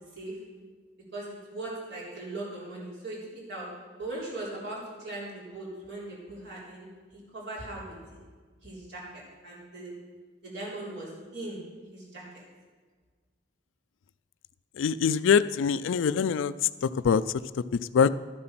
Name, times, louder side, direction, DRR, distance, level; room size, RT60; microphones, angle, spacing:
voice 1, 1.1-3.2 3.5-3.7 4.0-6.9 7.3-7.9 8.6-9.9 10.4-11.6 11.9-12.4, right 2 dB, 60° right, -5 dB, 3.9 m, -39 dB
voice 2, 14.8-16.5 17.0-17.2 17.9-18.1, left 6 dB, 75° left, 16 dB, 0.4 m, -23 dB
12.5 x 7.7 x 6.0 m, 1.5 s
head